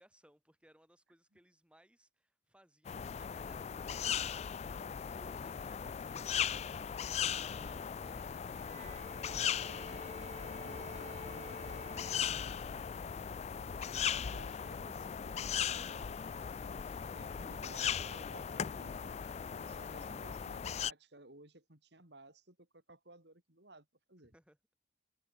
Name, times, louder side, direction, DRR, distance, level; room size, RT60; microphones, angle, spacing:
voice 1, 0.0-4.6 5.0-10.7 10.9-13.3 19.7-20.2 24.3-24.6, equal, 5° right, 6.2 m, -65 dB
sound 1, 2.8-20.9, left 8 dB, 35° left, 0.3 m, -38 dB
Bowed string instrument, 8.5-12.9, right 2 dB, 35° right, 2.9 m, -52 dB
voice 2, 10.6-11.0 14.3-19.2 19.5-24.3, right 2 dB, 60° right, 4.6 m, -57 dB
head